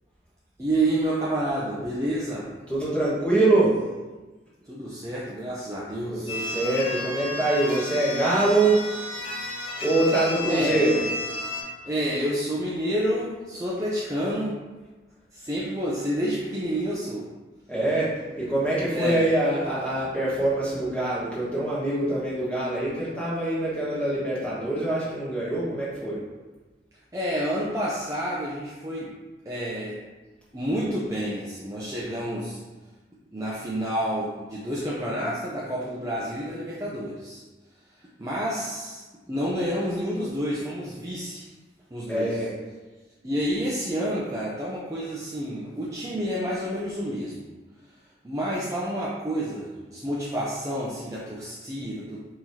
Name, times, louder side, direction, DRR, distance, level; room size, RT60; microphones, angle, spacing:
voice 1, 0.6-2.5 4.7-6.4 10.5-10.8 11.8-14.6 15.3-17.3 18.9-19.3 27.1-29.1 29.5-30.0 30.5-32.6 33.3-37.4 38.0-41.5 41.9-42.4 43.2-47.5 48.2-52.3, equal, 20° right, -7 dB, 0.5 m, -29 dB
voice 2, 2.7-3.7 6.1-8.8 9.3-9.5 9.8-11.0 17.7-18.1 18.4-26.2 42.1-42.5, right 2 dB, 5° left, -9 dB, 1.4 m, -24 dB
sound 1, 6.3-11.6, left 1 dB, 30° left, 0.9 m, -32 dB
4.6 x 3.7 x 2.8 m, 1.2 s
head